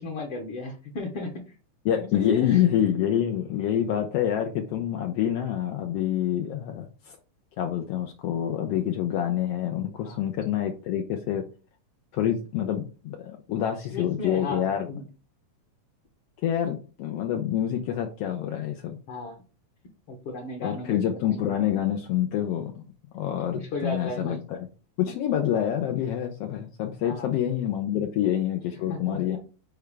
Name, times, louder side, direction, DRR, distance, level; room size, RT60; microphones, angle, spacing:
voice 1, 0.0-1.5 2.2-2.6 10.0-10.2 13.9-15.1 19.1-19.4 20.1-21.0 23.5-24.4 27.0-27.3 27.9-28.0 28.9-29.4, left 2 dB, 60° left, 2 dB, 1.7 m, -34 dB
voice 2, 1.8-7.2 7.6-11.4 12.1-14.9 16.4-19.0 20.6-22.8 23.1-24.7 25.0-29.4, left 10 dB, 80° left, 3 dB, 1.4 m, -27 dB
7.0 x 4.6 x 3.3 m, 0.35 s
omnidirectional pair, 3.6 m